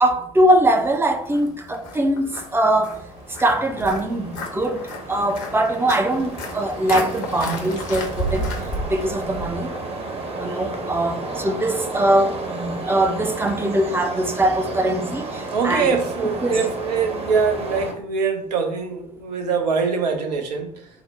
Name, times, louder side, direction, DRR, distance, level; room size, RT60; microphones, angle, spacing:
voice 1, 0.0-3.0 3.4-8.5 8.8-9.7 10.4-16.0 16.4-16.6, right 1 dB, 10° right, 0.5 m, -22 dB
Walk footsteps, 0.8-9.5, left 1 dB, 65° left, 0.8 m, -33 dB
sound 1, 2.3-17.9, right 2 dB, 30° right, 0.8 m, -33 dB
voice 2, 15.5-20.9, right 5 dB, 75° right, 0.6 m, -23 dB
3.7 x 2.0 x 4.2 m
figure-of-eight pair, 55°, 21 cm